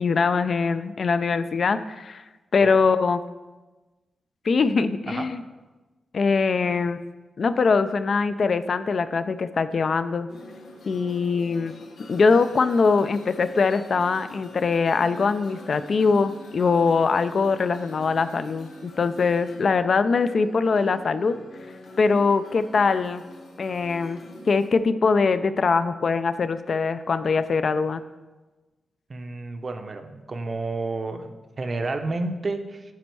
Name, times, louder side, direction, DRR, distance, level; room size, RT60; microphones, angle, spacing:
voice 1, 0.0-2.2 2.5-3.2 4.4-5.4 6.1-7.0 7.4-10.3 10.9-11.7 12.1-21.4 22.0-23.2 23.6-24.2 24.5-28.0, left 4 dB, 50° left, 12 dB, 0.3 m, -22 dB
sound 1, 10.3-24.7, left 1 dB, 70° left, 1.1 m, -45 dB
voice 2, 29.1-32.8, right 3 dB, 35° right, 7 dB, 0.6 m, -30 dB
9.3 x 4.3 x 4.6 m, 1.2 s
wide cardioid pair, 145°, 0 cm